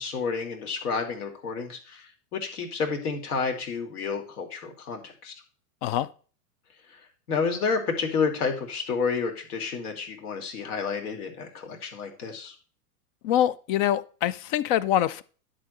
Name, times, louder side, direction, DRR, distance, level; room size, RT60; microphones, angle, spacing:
voice 1, 0.0-5.3 6.9-12.5, left 5 dB, 70° left, 4 dB, 3.0 m, -30 dB
voice 2, 13.2-15.2, left 11 dB, 35° left, 18 dB, 0.5 m, -24 dB
11.0 x 3.9 x 6.5 m, 0.39 s
hypercardioid pair, 120°, 47 cm